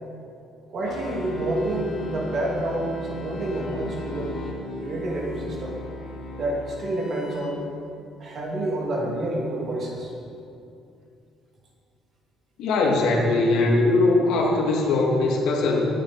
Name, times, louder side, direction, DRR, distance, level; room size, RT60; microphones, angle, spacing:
voice 1, 0.7-4.3 4.8-5.8 6.4-7.6 8.2-10.1, right 1 dB, 35° right, -2 dB, 2.5 m, -28 dB
sound 1, 0.8-7.4, left 2 dB, 50° left, 2.8 m, -36 dB
voice 2, 12.6-15.9, left 2 dB, 70° left, -2 dB, 2.5 m, -21 dB
20.0 x 8.5 x 4.3 m, 2.6 s
cardioid pair, 180°, 0 cm